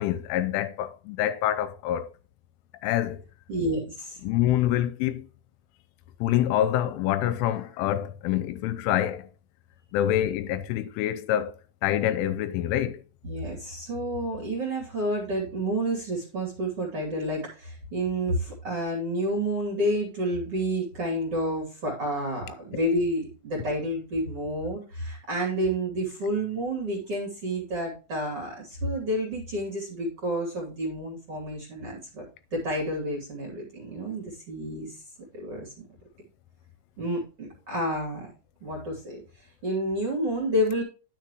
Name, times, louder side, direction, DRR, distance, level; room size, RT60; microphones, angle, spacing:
voice 1, 0.0-2.1 2.8-3.2 4.2-5.3 6.2-9.3 9.9-11.5 11.8-13.0, left 12 dB, 85° left, 3.1 m, -26 dB
voice 2, 3.5-4.2 13.2-32.3 32.5-35.0 35.3-35.7 37.0-38.3 38.6-40.8, equal, 40° right, 2.3 m, -30 dB
10.5 x 6.5 x 3.0 m
omnidirectional pair, 5.7 m